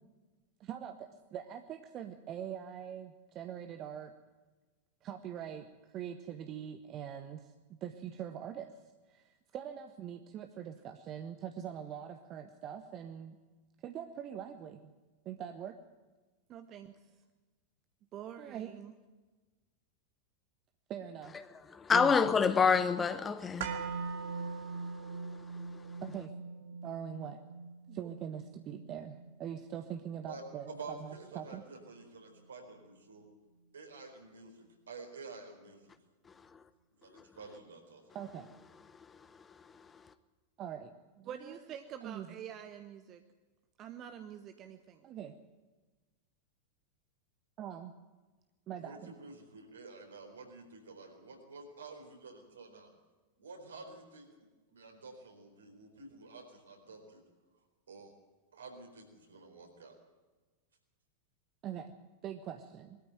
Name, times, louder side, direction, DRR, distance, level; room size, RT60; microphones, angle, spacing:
voice 1, 0.6-4.1 5.0-8.8 9.1-13.4 13.8-14.9 15.2-15.8 16.5-17.0 18.1-19.0 20.9-21.4 21.9-22.3 26.0-26.3 26.7-27.4 27.9-31.6 38.1-38.5 40.6-43.2 43.8-45.4 47.6-47.9 48.7-49.1 61.6-61.9 62.2-63.0, right 9 dB, 35° right, 1.0 m, -43 dB
voice 2, 21.7-23.8 24.3-24.5 25.1-25.2 39.7-39.9, left 5 dB, 15° left, 0.9 m, -28 dB
sound 1, 23.6-31.7 32.0-32.1, right 5 dB, 55° right, 1.9 m, -43 dB
voice 3, 30.7-33.2 33.7-35.8 37.0-38.0 48.8-52.9 53.4-54.3 54.7-57.2 57.9-58.1 58.5-59.9, right 3 dB, 70° right, 4.4 m, -50 dB
21.0 x 13.5 x 9.2 m
figure-of-eight pair, 90°, 0 cm